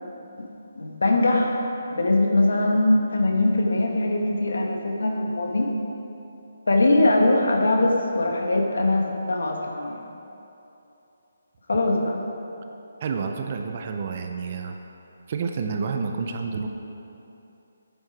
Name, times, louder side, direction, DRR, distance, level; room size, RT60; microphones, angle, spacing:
voice 1, 0.7-1.6 1.9-5.7 6.7-10.0 11.7-12.2, left 2 dB, 90° left, 1 dB, 1.6 m, -21 dB
voice 2, 13.0-14.8 15.3-16.7, right 5 dB, 30° right, 4 dB, 0.5 m, -29 dB
9.5 x 9.3 x 4.9 m, 2.9 s
hypercardioid pair, 175°, 0 cm